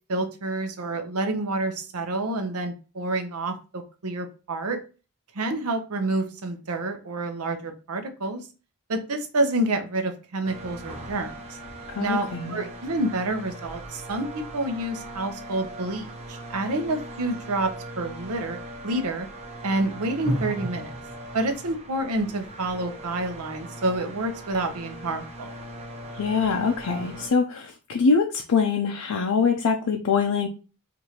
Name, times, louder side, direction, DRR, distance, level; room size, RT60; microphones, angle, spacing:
voice 1, 0.1-4.8 5.3-8.5 8.9-11.4 12.0-18.6 18.8-19.3 19.6-20.9 21.3-25.5, right 2 dB, 85° right, 7 dB, 0.7 m, -28 dB
sound 1, 10.4-27.3, right 1 dB, 30° right, 0.9 m, -38 dB
voice 2, 11.9-12.6 26.1-30.5, left 5 dB, 80° left, 3 dB, 0.5 m, -24 dB
4.7 x 2.5 x 2.8 m, 0.33 s
head